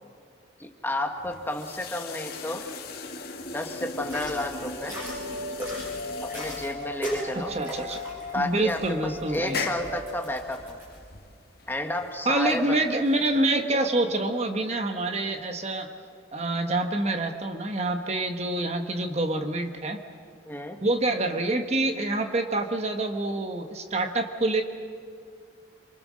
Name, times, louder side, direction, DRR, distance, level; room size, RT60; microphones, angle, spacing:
voice 1, 0.6-2.7 3.5-5.0 6.2-7.5 8.3-10.8 11.7-12.8 20.5-20.8, left 1 dB, 10° left, 3 dB, 1.6 m, -31 dB
sound 1, 1.2-13.6, left 4 dB, 50° left, 2.0 m, -40 dB
sound 2, 4.0-11.0, equal, 10° right, 7.6 m, -38 dB
sound 3, 4.9-10.2, left 2 dB, 65° right, 4.7 m, -38 dB
voice 2, 7.3-8.0 8.4-9.6 12.2-15.9 16.3-20.0 20.8-24.6, right 2 dB, 35° right, 5 dB, 1.2 m, -26 dB
27.5 x 24.5 x 6.4 m, 2.2 s
head